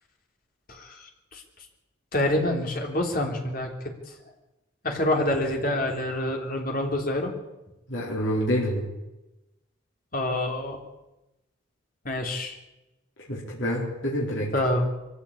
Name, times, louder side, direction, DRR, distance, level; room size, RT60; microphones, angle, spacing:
voice 1, 0.7-1.4 2.1-3.7 4.8-7.4 10.1-10.8 12.0-12.6 14.5-14.9, left 1 dB, 45° left, 2 dB, 3.5 m, -27 dB
voice 2, 7.9-8.9 13.3-14.5, equal, 60° left, -4 dB, 4.1 m, -27 dB
23.0 x 15.0 x 8.7 m, 0.98 s
head